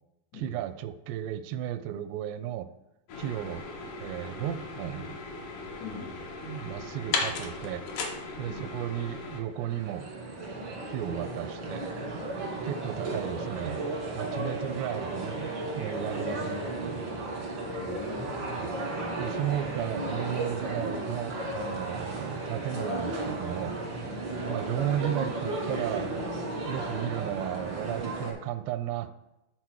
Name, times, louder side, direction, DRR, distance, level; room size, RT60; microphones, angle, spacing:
voice 1, 0.3-2.7 3.2-3.7 4.0-5.2 6.4-7.9 8.4-10.1 10.4-10.5 10.9-11.9 12.6-15.4 15.8-17.0 18.6-18.7 19.2-23.8 24.5-26.2 26.6-29.1, right 11 dB, 85° right, 12 dB, 2.7 m, -34 dB
sound 1, 3.1-9.4, left 4 dB, 70° left, 2.0 m, -36 dB
voice 2, 5.8-6.1 8.5-8.7 16.1-17.2 17.7-19.0 24.3-24.6, left 4 dB, 85° left, -2 dB, 4.0 m, -42 dB
sound 2, 9.5-28.3, right 2 dB, 70° right, 1.1 m, -34 dB
10.5 x 4.1 x 4.6 m, 0.93 s
omnidirectional pair, 4.8 m